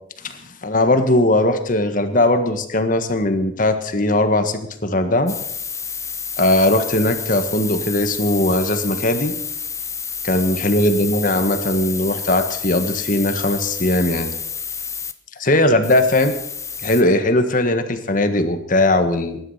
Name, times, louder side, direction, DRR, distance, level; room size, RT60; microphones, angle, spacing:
voice 1, 0.2-5.4 6.4-9.4 10.2-14.3 15.4-16.3 16.8-19.4, left 1 dB, 45° left, 8 dB, 1.6 m, -19 dB
sound 1, 5.3-15.1 15.8-17.0, left 6 dB, 15° left, 0.7 m, -30 dB
20.0 x 11.0 x 5.7 m, 0.76 s
head